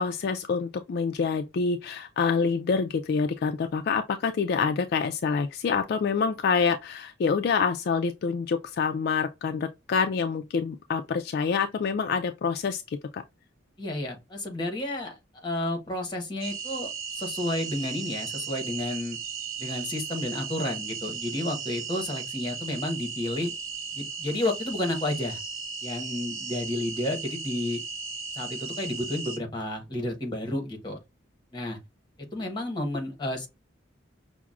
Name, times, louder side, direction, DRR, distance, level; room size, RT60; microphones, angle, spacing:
voice 1, 0.0-13.2, left 5 dB, 55° left, 0.3 m, -27 dB
voice 2, 13.8-19.2 19.6-23.5 23.9-25.4 25.8-27.8 28.4-31.0 31.5-31.8 32.2-33.5, left 1 dB, 25° left, 1.1 m, -31 dB
sound 1, 16.4-29.4, right 5 dB, 85° right, 0.6 m, -36 dB
5.8 x 2.1 x 2.4 m
head